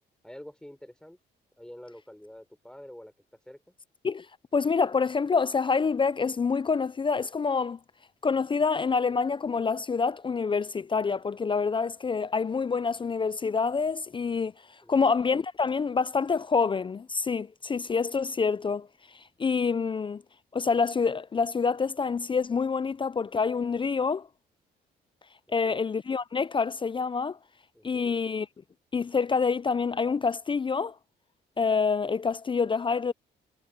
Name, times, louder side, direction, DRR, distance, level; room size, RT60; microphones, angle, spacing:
voice 1, 0.2-1.2 1.6-3.1 3.4-3.7 14.8-15.1 25.5-25.8 27.7-28.2, equal, 5° left, 4.8 m, -47 dB
voice 2, 4.5-7.8 8.2-14.5 14.9-18.9 19.1-20.2 20.5-24.3 25.5-27.4 27.8-28.5 28.9-30.9 31.6-33.1, left 5 dB, 25° left, 0.5 m, -27 dB
cardioid pair, 90°, 18 cm